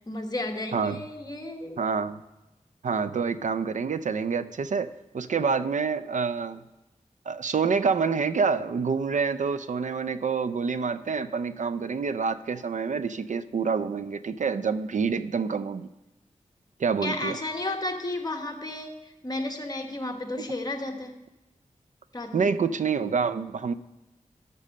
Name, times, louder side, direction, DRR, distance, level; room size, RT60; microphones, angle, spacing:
voice 1, 0.1-1.8 17.0-21.2 22.1-22.5, left 2 dB, 30° left, 3 dB, 1.1 m, -33 dB
voice 2, 1.8-2.2 2.8-6.6 7.3-15.9 16.8-17.4 22.3-23.7, right 5 dB, 70° right, 13 dB, 0.4 m, -27 dB
12.5 x 5.5 x 6.4 m, 0.98 s
wide cardioid pair, 100°, 13 cm